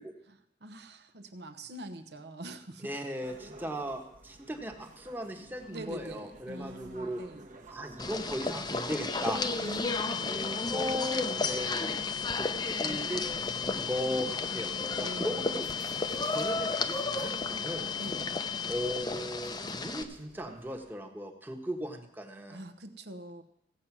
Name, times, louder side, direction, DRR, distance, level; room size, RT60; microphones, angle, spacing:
voice 1, 0.3-3.0 5.5-7.5 9.6-10.4 15.0-15.8 18.0-18.4 22.5-23.4, right 1 dB, 65° right, 8 dB, 1.0 m, -44 dB
voice 2, 2.8-7.2 7.7-9.4 10.3-11.9 12.3-15.7 16.3-17.9 18.7-22.6, equal, 10° right, 4 dB, 1.2 m, -37 dB
sound 1, 3.2-20.9, right 2 dB, 45° right, 1.2 m, -52 dB
sound 2, 8.0-20.0, left 3 dB, 25° left, 0.6 m, -34 dB
sound 3, 9.9-19.0, left 9 dB, 75° left, 0.4 m, -38 dB
16.0 x 7.9 x 6.0 m, 0.78 s
head